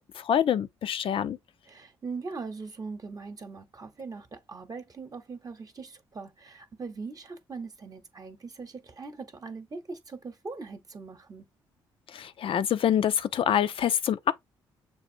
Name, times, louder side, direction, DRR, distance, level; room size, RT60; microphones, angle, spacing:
voice 1, 0.2-1.4 12.1-14.3, left 9 dB, 55° left, 0.6 m, -26 dB
voice 2, 1.7-11.5, right 4 dB, 35° right, 0.9 m, -41 dB
6.8 x 2.5 x 2.7 m
hypercardioid pair, 50°, 11 cm